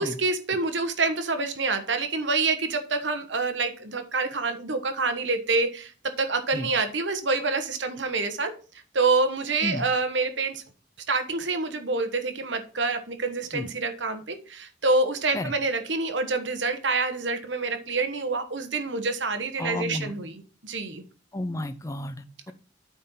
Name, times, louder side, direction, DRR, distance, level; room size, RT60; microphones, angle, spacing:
voice 1, 0.0-5.9 6.2-8.5 8.9-10.6 11.1-20.3 20.6-21.0, right 3 dB, 80° right, 8 dB, 1.2 m, -27 dB
voice 2, 19.6-20.2 21.3-22.5, left 1 dB, 15° left, 10 dB, 0.5 m, -32 dB
8.7 x 4.4 x 5.5 m, 0.38 s
head